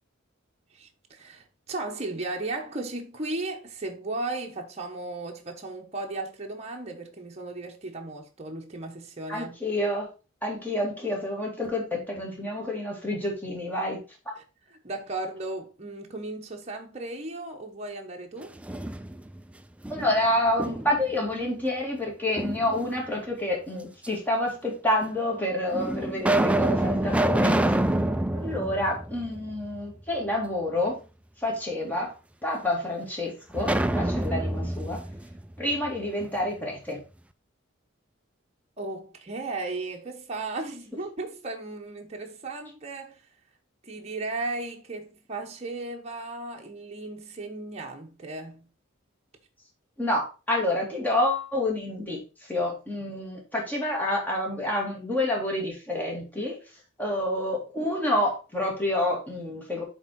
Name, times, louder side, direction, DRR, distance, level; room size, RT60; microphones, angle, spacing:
voice 1, 0.7-9.5 14.4-14.5 14.8-18.6 38.8-43.2 43.8-48.7, right 2 dB, 35° right, 1.0 m, -35 dB
voice 2, 9.3-10.1 10.4-14.0 19.9-27.5 28.3-30.9 31.4-32.1 32.4-35.0 35.6-37.0 50.0-56.6 57.0-59.8, left 1 dB, 10° left, 2.4 m, -28 dB
sound 1, 18.4-19.4 19.8-21.1 22.4-23.2 24.0-24.1 25.0-25.1 25.7-29.8 30.1-30.2 33.5-36.3, right 1 dB, 5° right, 0.4 m, -27 dB
8.1 x 3.7 x 4.6 m
head